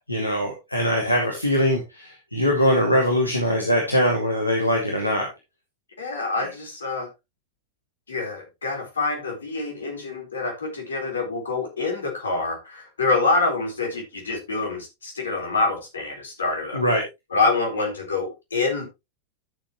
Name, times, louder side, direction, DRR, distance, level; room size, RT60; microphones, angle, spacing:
voice 1, 0.1-5.3 16.7-17.0, equal, 85° left, 1 dB, 2.1 m, -22 dB
voice 2, 6.0-7.1 8.1-16.8 17.3-18.9, left 3 dB, 70° left, 2 dB, 4.2 m, -26 dB
12.0 x 7.1 x 3.1 m, 0.23 s
figure-of-eight pair, 90°, 0 cm